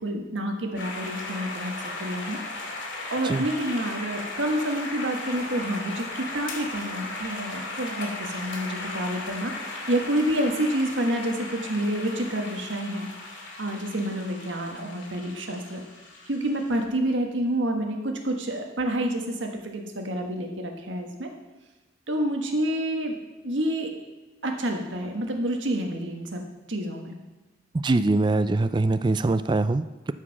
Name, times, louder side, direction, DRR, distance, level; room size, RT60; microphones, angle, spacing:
voice 1, 0.0-2.4 3.1-13.1 13.6-15.8 16.3-21.3 22.1-23.2 23.4-23.9 24.4-26.4 26.7-27.2, right 1 dB, 80° right, 3 dB, 1.5 m, -28 dB
sound 1, 0.8-16.8, left 2 dB, 80° left, 2.1 m, -37 dB
voice 2, 27.7-30.1, right 2 dB, 25° right, 13 dB, 0.3 m, -23 dB
12.0 x 5.0 x 5.9 m, 1.1 s
head